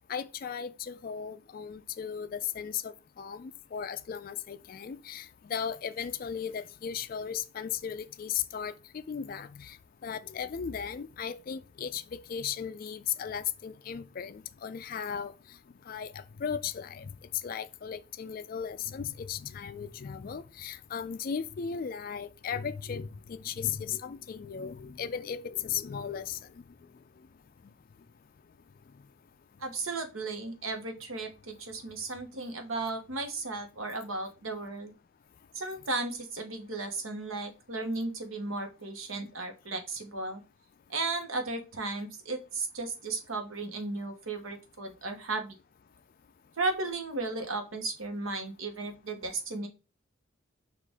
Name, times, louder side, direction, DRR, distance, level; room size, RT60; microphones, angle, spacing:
voice 1, 0.1-8.7 9.1-9.8 10.0-12.0 12.3-15.3 15.9-16.1 16.4-17.1 17.4-26.4, left 7 dB, 45° left, 0.3 m, -36 dB
voice 2, 29.6-34.9 35.5-40.4 40.9-45.6 46.6-49.7, right 3 dB, 85° right, 1.0 m, -35 dB
6.2 x 2.4 x 3.5 m
head